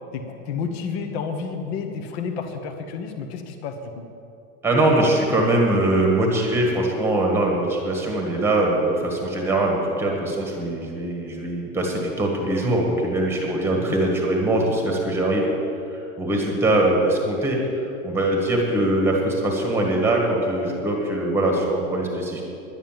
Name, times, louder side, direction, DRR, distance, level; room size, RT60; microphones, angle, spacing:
voice 1, 0.1-4.0 13.7-14.0, left 5 dB, 50° left, 6 dB, 1.1 m, -31 dB
voice 2, 4.6-15.5 16.2-22.4, right 1 dB, 5° right, 0 dB, 1.5 m, -22 dB
11.0 x 9.8 x 7.4 m, 2.6 s
supercardioid pair, 175°, 41 cm